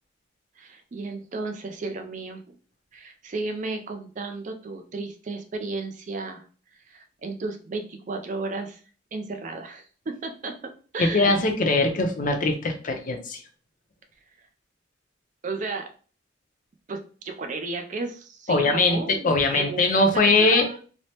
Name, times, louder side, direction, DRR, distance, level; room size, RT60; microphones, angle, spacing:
voice 1, 0.6-2.5 2.9-6.4 6.7-8.8 9.1-10.6 10.9-11.4 15.4-15.9 16.9-20.8, right 3 dB, 40° right, 4 dB, 0.4 m, -34 dB
voice 2, 11.0-13.4 18.5-20.7, left 2 dB, 45° left, 4 dB, 0.5 m, -21 dB
3.2 x 2.0 x 2.8 m, 0.40 s
head